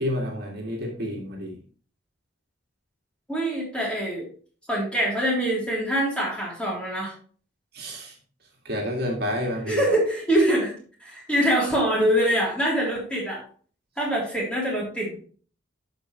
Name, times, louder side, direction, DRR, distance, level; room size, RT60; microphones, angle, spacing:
voice 1, 0.0-1.6 7.7-8.1 8.7-9.8, left 1 dB, 55° right, -1 dB, 2.1 m, -29 dB
voice 2, 3.3-4.3 4.7-7.1 9.7-10.7 11.0-13.4 14.0-15.2, right 1 dB, 5° left, -5 dB, 3.4 m, -24 dB
11.5 x 5.3 x 3.2 m, 0.43 s
head